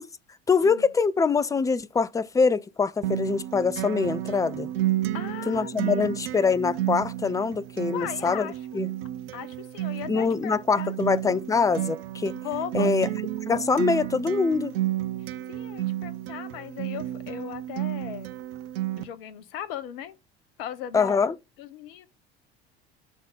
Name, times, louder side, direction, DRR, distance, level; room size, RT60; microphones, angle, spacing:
voice 1, 0.5-4.7 5.5-8.9 10.1-12.4 12.7-13.1 13.5-14.8 20.9-21.4, left 5 dB, 10° left, 0.4 m, -24 dB
Acoustic guitar, 3.0-19.0, right 15 dB, 70° right, 0.7 m, -31 dB
voice 2, 5.1-6.1 7.9-8.6 9.3-10.9 12.4-13.2 15.2-18.3 19.0-20.1 20.6-21.3 21.6-22.1, left 10 dB, 65° left, 0.9 m, -37 dB
8.5 x 3.7 x 5.0 m
figure-of-eight pair, 65°, 31 cm